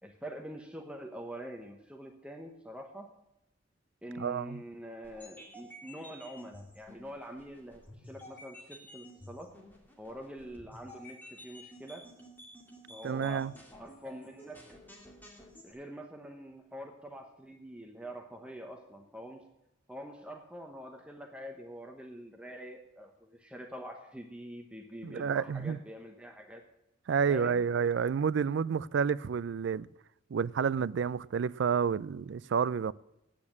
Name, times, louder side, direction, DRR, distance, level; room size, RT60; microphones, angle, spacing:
voice 1, 0.0-3.1 4.0-9.5 10.0-12.1 12.9-13.5 13.8-14.6 15.6-19.4 19.9-26.6 27.3-27.6, equal, 5° right, 0.9 m, -45 dB
voice 2, 4.2-4.6 13.0-13.5 25.0-25.8 27.1-29.9 30.3-32.9, right 6 dB, 65° right, 0.4 m, -30 dB
sound 1, 5.0-15.7, equal, 10° left, 2.2 m, -52 dB
8.7 x 8.5 x 8.5 m
head